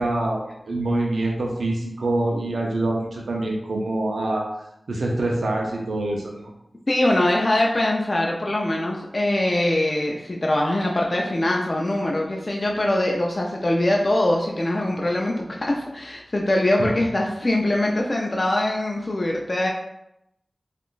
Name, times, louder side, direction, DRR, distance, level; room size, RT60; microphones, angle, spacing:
voice 1, 0.0-4.4 4.9-6.5 16.8-16.9, right 2 dB, 90° right, -1 dB, 0.5 m, -25 dB
voice 2, 6.9-19.7, left 1 dB, 45° left, -1 dB, 0.4 m, -22 dB
3.6 x 2.4 x 2.4 m, 0.82 s
cardioid pair, 45°, 0 cm